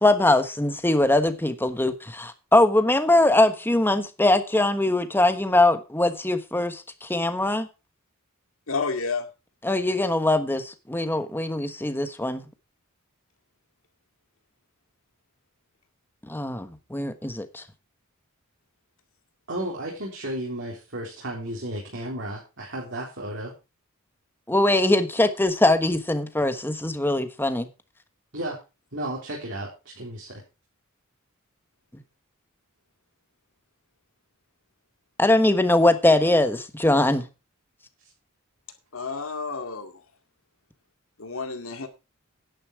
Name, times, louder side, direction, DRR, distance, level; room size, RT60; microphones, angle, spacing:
voice 1, 0.0-7.7 9.6-12.4 16.3-17.6 24.5-27.7 35.2-37.3, left 2 dB, 10° left, 1.2 m, -22 dB
voice 2, 8.7-9.3 38.9-40.0 41.2-41.9, left 4 dB, 70° left, 2.2 m, -30 dB
voice 3, 19.5-23.5 28.3-28.6 28.9-29.7 30.0-30.4, right 1 dB, 65° right, 3.8 m, -33 dB
10.5 x 9.9 x 4.6 m
head